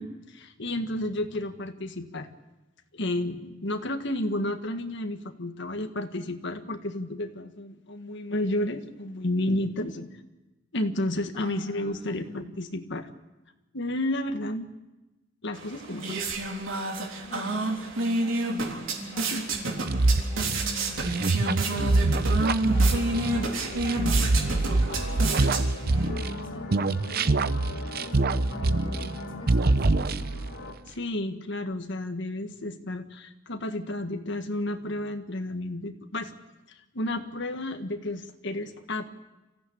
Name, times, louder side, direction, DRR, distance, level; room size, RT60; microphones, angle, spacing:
voice 1, 0.0-2.3 2.9-10.1 10.7-13.1 13.7-14.7 15.4-16.2 19.3-19.5 30.9-36.3 36.7-39.1, left 1 dB, 65° left, 6 dB, 1.7 m, -31 dB
voice 2, 11.3-12.4 17.2-21.2 21.6-23.5 23.8-25.6 25.9-30.3, left 1 dB, 30° left, -2 dB, 4.8 m, -44 dB
sound 1, 15.5-26.1, right 2 dB, 85° right, 3.6 m, -30 dB
sound 2, 19.9-26.4 26.7-29.2 29.5-30.5, right 2 dB, 50° right, 0.7 m, -24 dB
sound 3, 22.7-30.7, left 2 dB, 85° left, 2.6 m, -39 dB
25.0 x 15.5 x 8.7 m, 1.1 s
head